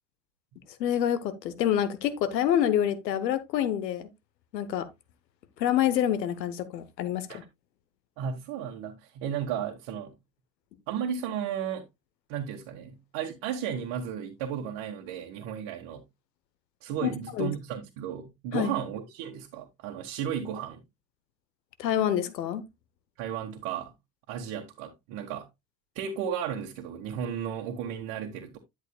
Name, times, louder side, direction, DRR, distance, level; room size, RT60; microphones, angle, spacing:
voice 1, 0.8-4.1 4.5-4.9 5.6-7.4 17.0-17.5 18.5-18.7 21.8-22.6, left 10 dB, 80° left, 1.0 m, -27 dB
voice 2, 8.2-10.2 10.9-11.8 12.3-16.0 16.8-20.8 23.2-23.9 24.3-25.5 25.9-28.6, right 8 dB, 60° right, 1.6 m, -34 dB
11.0 x 7.6 x 2.3 m
hypercardioid pair, 60°, 50 cm